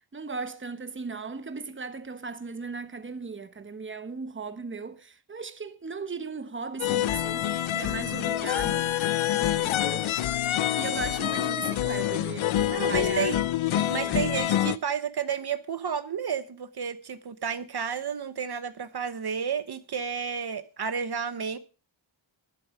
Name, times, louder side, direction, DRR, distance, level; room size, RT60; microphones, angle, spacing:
voice 1, 0.1-13.3 13.7-14.4, right 4 dB, 25° right, 1.2 m, -38 dB
sound 1, 6.8-14.8, left 12 dB, 90° left, 0.6 m, -26 dB
sound 2, 7.4-12.9, right 1 dB, 5° right, 2.7 m, -52 dB
voice 2, 12.7-13.4 13.9-21.6, right 7 dB, 55° right, 1.0 m, -31 dB
12.0 x 11.5 x 4.8 m
wide cardioid pair, 140°, 46 cm